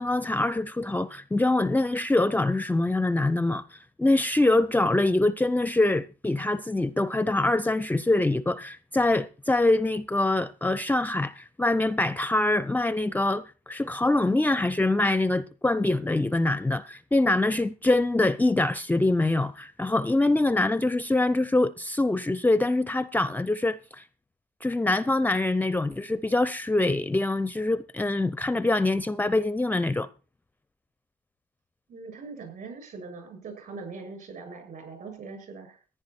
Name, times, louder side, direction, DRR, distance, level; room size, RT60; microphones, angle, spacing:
voice 1, 0.0-24.0 24.6-30.1, left 2 dB, 10° left, 0.5 m, -24 dB
voice 2, 31.9-35.8, right 4 dB, 55° right, 6.7 m, -41 dB
14.5 x 10.0 x 4.3 m
cardioid pair, 110°, 17 cm